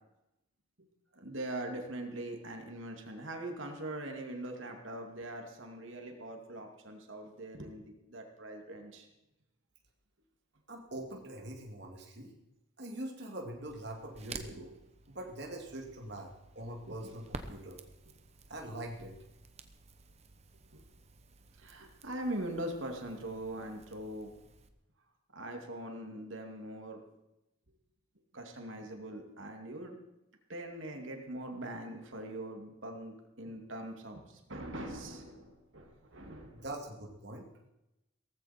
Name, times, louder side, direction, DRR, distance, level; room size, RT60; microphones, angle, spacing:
voice 1, 1.1-9.1 14.3-14.7 16.9-17.2 20.7-20.8 21.6-24.3 25.3-27.0 28.3-30.0 30.5-36.6, right 1 dB, 70° right, 3 dB, 2.5 m, -42 dB
voice 2, 10.7-12.3 12.8-14.7 15.1-16.3 16.5-17.8 18.5-19.1 36.5-37.7, right 1 dB, 55° right, 0 dB, 2.5 m, -43 dB
Crackle, 13.7-24.7, right 3 dB, 30° right, 1.0 m, -51 dB
17.5 x 15.0 x 4.4 m, 0.91 s
head